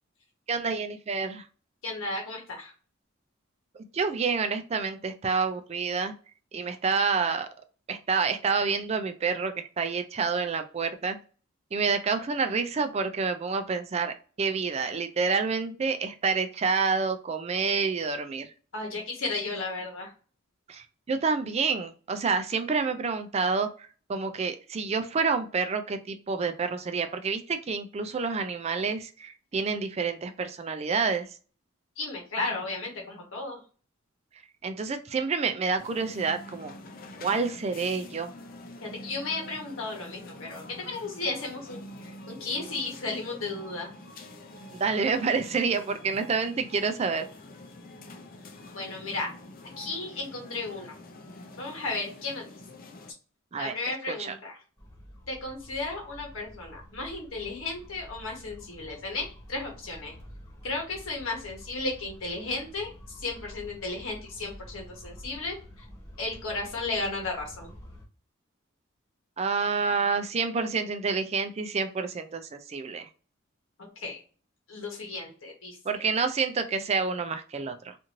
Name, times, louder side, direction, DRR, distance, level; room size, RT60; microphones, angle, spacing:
voice 1, 0.5-1.5 3.7-6.1 6.5-7.5 7.9-11.2 11.7-18.5 20.7-31.4 34.6-36.7 37.2-38.3 44.7-47.3 53.5-53.7 54.1-54.4 69.4-73.1 75.8-78.0, right 5 dB, 30° right, 8 dB, 0.3 m, -28 dB
voice 2, 1.8-2.7 18.7-20.1 32.0-33.6 38.8-41.8 42.3-43.9 48.7-49.3 49.8-50.9 51.6-52.4 53.6-54.6 55.3-60.1 60.6-65.9 66.2-67.7 74.0-74.2 74.7-76.0, left 3 dB, 75° left, 0 dB, 1.0 m, -34 dB
sound 1, 35.8-53.1, left 1 dB, 45° left, 0.5 m, -46 dB
sound 2, 54.8-68.1, equal, 15° left, 1.0 m, -48 dB
2.6 x 2.5 x 2.9 m, 0.37 s
head